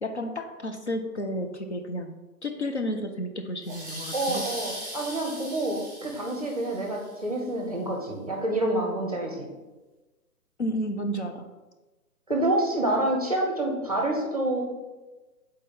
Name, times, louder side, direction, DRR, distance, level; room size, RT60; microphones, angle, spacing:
voice 1, 0.0-4.5 10.6-11.5, equal, 50° left, 5 dB, 0.5 m, -32 dB
sound 1, 3.6-7.1, equal, ahead, 1.9 m, -39 dB
voice 2, 4.1-9.5 12.3-14.6, right 1 dB, 25° right, 1 dB, 0.7 m, -27 dB
6.8 x 4.2 x 3.8 m, 1.2 s
hypercardioid pair, 170°, 46 cm